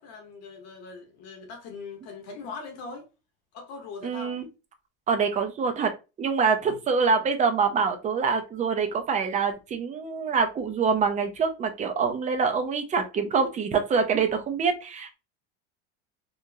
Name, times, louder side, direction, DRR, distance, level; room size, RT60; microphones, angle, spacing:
voice 1, 0.0-3.1 3.5-4.4 6.7-6.8, left 4 dB, 50° left, 1.0 m, -41 dB
voice 2, 4.0-4.5 5.1-5.9 6.2-15.1, right 5 dB, 20° right, 0.5 m, -25 dB
2.9 x 2.4 x 2.7 m
supercardioid pair, 125°, 33 cm